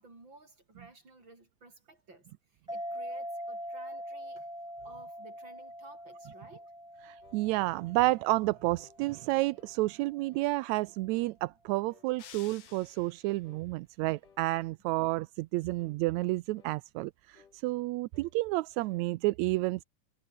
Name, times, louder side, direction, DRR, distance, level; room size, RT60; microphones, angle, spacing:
voice 1, 0.0-4.5 4.8-6.7, right 2 dB, 35° right, 7.9 m, -55 dB
sound 1, 2.7-9.7, equal, ahead, 1.7 m, -43 dB
voice 2, 7.0-19.8, right 20 dB, 80° right, 1.8 m, -30 dB
sound 2, 7.2-7.5 8.0-8.2 8.8-9.0 9.6-9.8 10.3-10.6 11.1-11.4 11.9-12.1 12.7-12.9 13.4-13.7 14.2-14.5 15.0-15.2 15.8-16.0 16.5-16.8 17.3-17.6 18.1-18.4 18.7-19.2, left 7 dB, 90° left, 4.4 m, -62 dB
sound 3, 12.2-13.4, left 10 dB, 70° left, 3.0 m, -52 dB
omnidirectional pair, 3.5 m